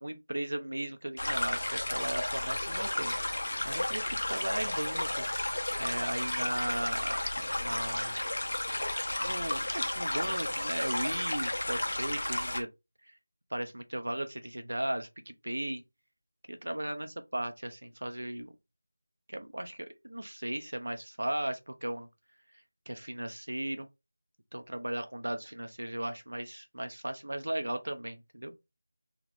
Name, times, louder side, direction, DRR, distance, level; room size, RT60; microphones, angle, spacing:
voice 1, 0.0-4.0 4.3-5.2 5.8-7.2 7.6-8.1 9.2-12.7 13.5-15.8 16.5-18.5 19.3-22.1 22.9-23.9 24.5-28.5, right 1 dB, 85° right, 0.5 m, -36 dB
sound 1, 1.2-12.6, left 1 dB, 65° left, 0.7 m, -33 dB
3.5 x 2.1 x 3.3 m
figure-of-eight pair, 175°, 0 cm